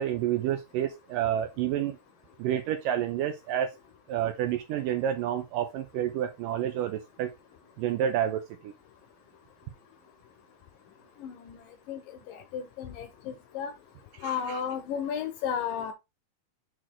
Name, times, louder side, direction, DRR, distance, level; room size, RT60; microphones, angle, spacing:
voice 1, 0.0-2.0 2.4-3.7 4.1-7.3 7.8-8.7 14.2-14.6, right 10 dB, 75° right, 2.1 m, -29 dB
voice 2, 11.2-11.6 11.9-12.0 12.3-13.7 14.2-15.9, left 8 dB, 75° left, 2.2 m, -33 dB
6.4 x 4.1 x 4.4 m
omnidirectional pair, 4.5 m